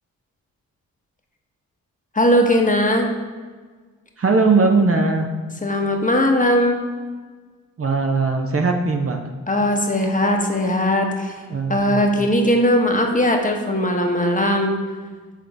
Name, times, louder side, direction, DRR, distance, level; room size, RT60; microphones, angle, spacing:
voice 1, 2.1-3.1 5.6-6.8 9.5-11.4 11.7-14.7, left 1 dB, 20° left, 2 dB, 1.1 m, -19 dB
voice 2, 4.2-5.3 7.8-9.2 11.5-12.0, right 3 dB, 40° right, 3 dB, 0.7 m, -19 dB
7.4 x 3.8 x 3.5 m, 1.4 s
supercardioid pair, 40°, 35 cm